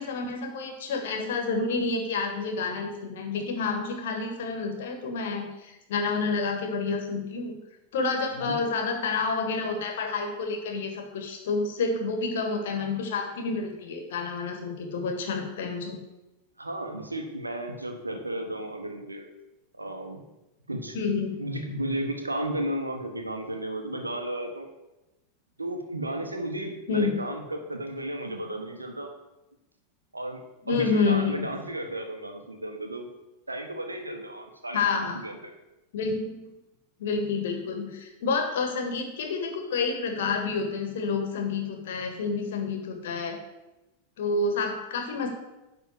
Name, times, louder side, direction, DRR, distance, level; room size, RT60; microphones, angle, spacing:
voice 1, 0.0-7.5 7.9-16.0 20.9-21.3 26.9-27.1 30.7-31.5 34.7-35.2 35.9-36.5 37.0-43.4 44.2-45.3, left 4 dB, 55° left, 4 dB, 2.0 m, -29 dB
voice 2, 16.6-19.3 19.8-20.2 20.7-21.0 21.4-24.7 25.6-29.1 30.1-30.4 30.7-33.1 33.5-35.5, right 1 dB, 80° right, 4 dB, 1.4 m, -33 dB
10.5 x 4.2 x 7.6 m, 0.98 s
figure-of-eight pair, 90°, 0 cm